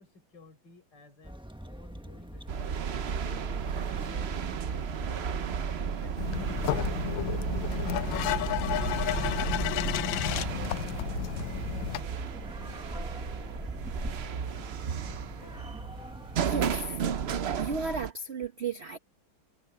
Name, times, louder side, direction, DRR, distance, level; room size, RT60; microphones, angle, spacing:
voice 1, 0.0-3.2 3.7-4.4 4.7-6.4 15.0-15.8, left 3 dB, 60° left, 5.7 m, -56 dB
sound 1, 1.2-16.5, equal, 5° right, 0.8 m, -43 dB
sound 2, 2.5-18.1, right 7 dB, 65° right, 0.6 m, -33 dB
sound 3, 6.2-12.0, left 14 dB, 80° left, 1.4 m, -31 dB
voice 2, 16.4-17.0 17.6-19.0, right 4 dB, 40° right, 1.2 m, -34 dB
omnidirectional pair, 2.1 m